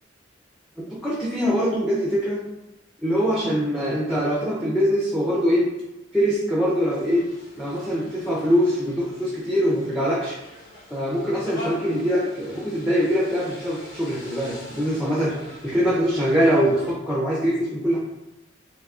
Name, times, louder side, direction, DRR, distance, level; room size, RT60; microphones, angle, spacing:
voice 1, 0.8-2.4 3.0-5.7 6.1-7.3 7.6-10.4 10.9-18.0, equal, ahead, -5 dB, 0.4 m, -23 dB
sound 1, 6.9-16.9, left 1 dB, 85° left, 1.0 m, -43 dB
3.5 x 2.6 x 2.4 m, 0.93 s
head